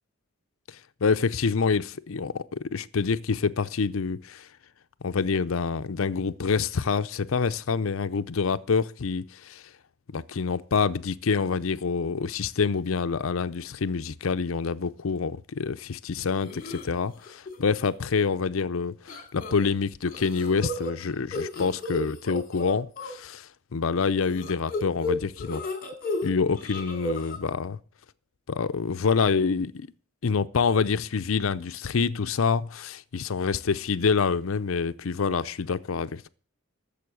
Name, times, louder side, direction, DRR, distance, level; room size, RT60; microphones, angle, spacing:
voice 1, 0.7-4.5 5.0-9.7 10.1-25.6 26.2-27.8 28.5-29.9 30.2-36.3, left 5 dB, 75° left, 0.6 m, -27 dB
sound 1, 16.4-16.8 17.2-17.6 17.8-17.9 19.1-19.7 20.1-23.1 24.2-26.3 26.6-27.4, left 2 dB, 40° left, 2.6 m, -33 dB
13.5 x 7.0 x 8.3 m
head